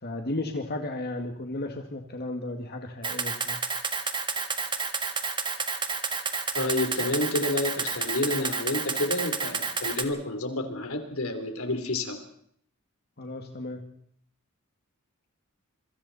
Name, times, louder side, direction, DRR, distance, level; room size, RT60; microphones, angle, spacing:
voice 1, 0.0-3.6 13.2-13.8, left 2 dB, 50° left, 3 dB, 2.0 m, -34 dB
Camera, 3.0-10.0, right 5 dB, 25° right, 1.8 m, -30 dB
voice 2, 6.5-12.2, left 2 dB, 85° left, 6 dB, 3.6 m, -29 dB
27.0 x 24.5 x 4.2 m, 0.65 s
head